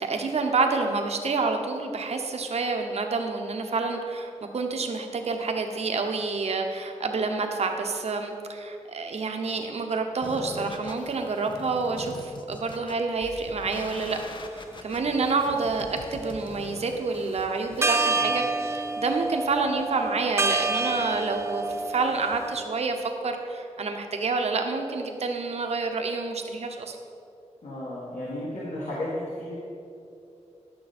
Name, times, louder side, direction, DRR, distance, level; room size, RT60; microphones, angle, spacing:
voice 1, 0.0-14.2 14.5-27.0, right 4 dB, 60° right, 4 dB, 0.9 m, -28 dB
sound 1, 10.2-18.2, left 3 dB, 40° left, 0.6 m, -43 dB
sound 2, 14.1-14.2 14.9-15.9 17.4-17.5 17.8-22.7, right 3 dB, 20° right, 0.5 m, -28 dB
voice 2, 18.1-18.5 27.6-29.6, left 1 dB, 70° left, -6 dB, 1.8 m, -34 dB
12.0 x 6.7 x 4.3 m, 2.7 s
wide cardioid pair, 135°, 12 cm